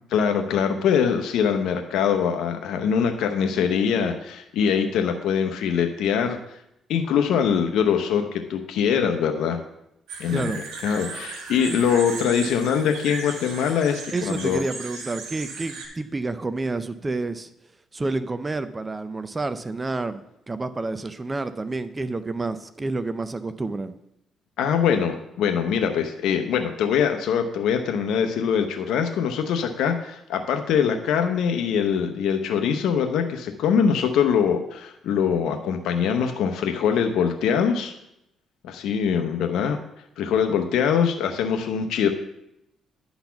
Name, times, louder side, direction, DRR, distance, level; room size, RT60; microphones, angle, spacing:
voice 1, 0.1-6.4 6.9-9.6 10.2-10.5 10.8-14.6 24.6-37.9 38.6-39.8 40.2-42.1, left 7 dB, 80° left, 5 dB, 0.7 m, -23 dB
sound 1, 10.1-15.9, right 4 dB, 85° right, 1.6 m, -36 dB
voice 2, 10.3-10.6 14.1-17.5 17.9-23.9, right 3 dB, 25° right, 12 dB, 0.5 m, -29 dB
10.5 x 4.1 x 5.7 m, 0.81 s
cardioid pair, 90°, 0 cm